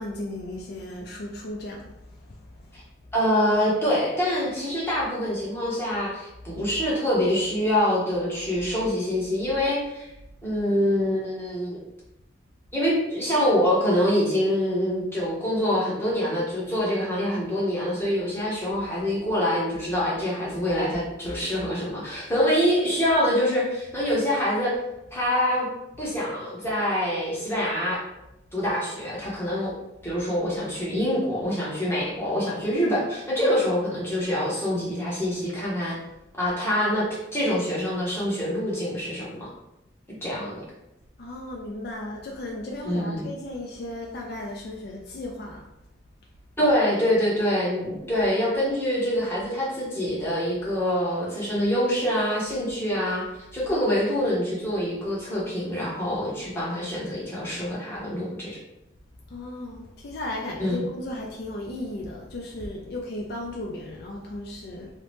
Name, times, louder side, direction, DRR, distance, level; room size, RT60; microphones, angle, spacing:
voice 1, 0.0-2.9 41.2-45.7 59.3-64.9, left 1 dB, 55° left, -1 dB, 0.4 m, -35 dB
voice 2, 3.1-10.1 10.4-11.8 12.7-24.8 25.1-25.7 26.0-28.0 28.5-29.7 30.0-36.0 36.4-37.1 37.3-39.5 40.2-40.6 42.8-43.2 46.6-58.6 60.6-60.8, equal, 10° left, -7 dB, 0.8 m, -25 dB
2.8 x 2.0 x 3.1 m, 0.89 s
head